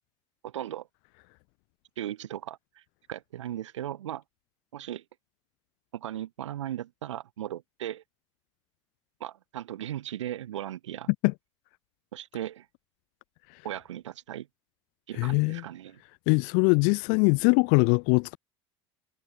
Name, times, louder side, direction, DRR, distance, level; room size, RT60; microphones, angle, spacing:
voice 1, 0.4-0.9 2.0-2.8 3.1-4.2 4.7-5.0 5.9-8.0 9.2-11.1 12.1-12.7 13.6-14.5 15.1-16.0, right 12 dB, 85° right, 1.0 m, -37 dB
voice 2, 15.2-15.6 16.3-18.4, left 39 dB, 60° left, 0.8 m, -22 dB
hypercardioid pair, 80°, 15 cm